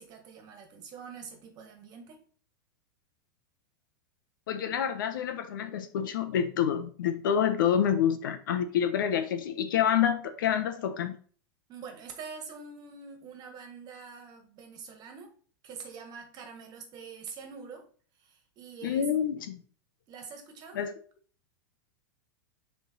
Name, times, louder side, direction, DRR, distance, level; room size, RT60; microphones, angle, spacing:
voice 1, 0.0-2.2 11.7-15.3 15.6-17.8 18.2-19.1 20.1-20.8, right 5 dB, 35° right, 1.7 m, -45 dB
voice 2, 4.5-11.1 18.8-19.6 20.7-20.9, left 8 dB, 80° left, 1.0 m, -27 dB
6.9 x 3.6 x 4.0 m
hypercardioid pair, 125°, 11 cm